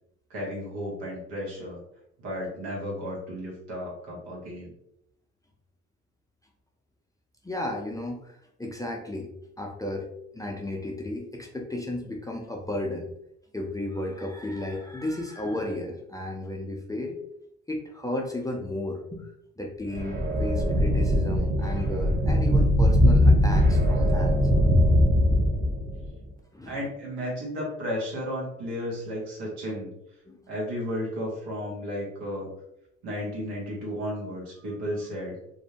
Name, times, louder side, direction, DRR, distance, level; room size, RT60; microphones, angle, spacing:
voice 1, 0.3-1.8 2.2-4.7 26.7-29.9 30.5-32.5 33.0-35.4, equal, 75° right, -3 dB, 1.1 m, -33 dB
voice 2, 7.4-9.3 9.6-10.1 10.3-13.1 13.5-17.2 17.7-19.3 19.6-24.4 26.5-26.8 30.3-30.4, left 1 dB, 10° left, 0 dB, 0.4 m, -33 dB
sound 1, 19.9-26.1, equal, 20° right, 0.7 m, -21 dB
2.6 x 2.0 x 2.7 m, 0.77 s
hypercardioid pair, 50°, 37 cm